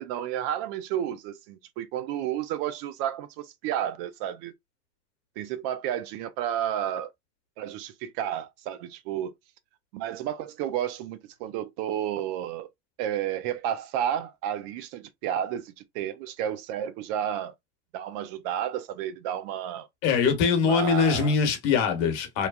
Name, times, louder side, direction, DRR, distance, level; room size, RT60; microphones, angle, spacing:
voice 1, 0.0-4.5 5.4-7.1 7.6-9.3 9.9-12.7 13.0-17.5 17.9-19.9 20.6-21.3, right 10 dB, 50° right, 0.5 m, -31 dB
voice 2, 20.0-22.5, left 6 dB, 55° left, 1.2 m, -23 dB
3.1 x 2.2 x 2.4 m
supercardioid pair, 125°, 35 cm